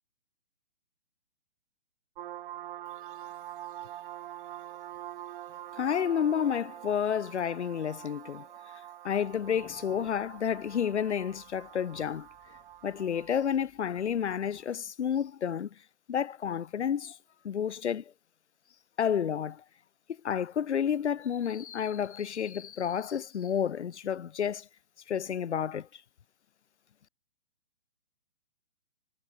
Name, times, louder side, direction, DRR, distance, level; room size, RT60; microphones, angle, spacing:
sound 1, 2.2-13.5, right 13 dB, 40° right, 3.7 m, -45 dB
voice 1, 5.8-8.5 9.0-12.3 12.8-15.7 16.1-17.2 17.4-18.0 19.0-19.6 20.2-24.7 25.1-26.0, left 8 dB, 60° left, 1.9 m, -30 dB
sound 2, 9.2-14.6, left 40 dB or more, 25° left, 3.7 m, -58 dB
figure-of-eight pair, 135°, 39 cm